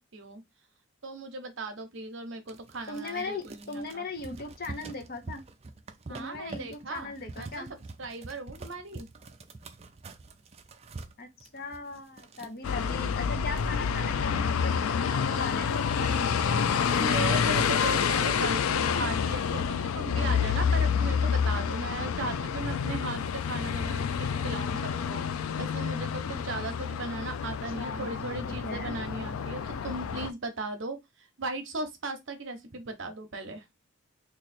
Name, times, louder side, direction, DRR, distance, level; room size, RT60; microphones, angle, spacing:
voice 1, 0.1-0.4 1.0-4.1 6.1-7.6 8.0-9.1 17.0-25.2 25.6-33.6, right 2 dB, 60° right, 0.8 m, -37 dB
sound 1, 2.5-12.8 13.2-13.3 13.5-14.2 14.6-14.9, right 3 dB, 30° right, 0.4 m, -45 dB
voice 2, 2.9-5.4 6.1-7.7 11.2-17.1 27.8-29.0, left 3 dB, 45° left, 0.7 m, -39 dB
sound 2, 12.6-30.3, left 6 dB, 85° left, 0.4 m, -28 dB
3.1 x 2.4 x 4.1 m
head